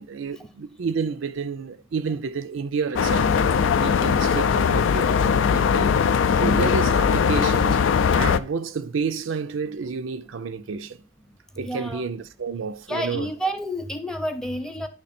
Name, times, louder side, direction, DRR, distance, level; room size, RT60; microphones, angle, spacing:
voice 1, 0.0-6.0 6.4-7.8 8.1-11.0 11.6-13.3, right 5 dB, 85° right, 0.5 m, -30 dB
sound 1, 3.0-8.4, left 6 dB, 80° left, 0.4 m, -20 dB
voice 2, 11.6-12.0 12.9-14.9, equal, 5° left, 0.6 m, -30 dB
9.6 x 3.3 x 4.2 m
head